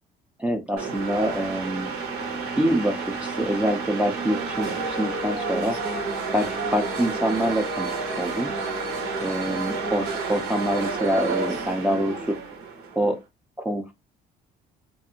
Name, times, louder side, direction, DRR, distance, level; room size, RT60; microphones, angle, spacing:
voice 1, 0.4-1.9 2.6-5.8 6.3-8.5 9.2-12.4 13.0-13.2 13.6-13.9, equal, 10° right, 0.4 m, -25 dB
sound 1, 0.8-13.1, right 4 dB, 90° right, 1.0 m, -30 dB
Wind instrument woodwind instrument, 4.7-10.0, left 7 dB, 45° left, 0.5 m, -39 dB
2.6 x 2.4 x 2.7 m
cardioid pair, 110°, 17 cm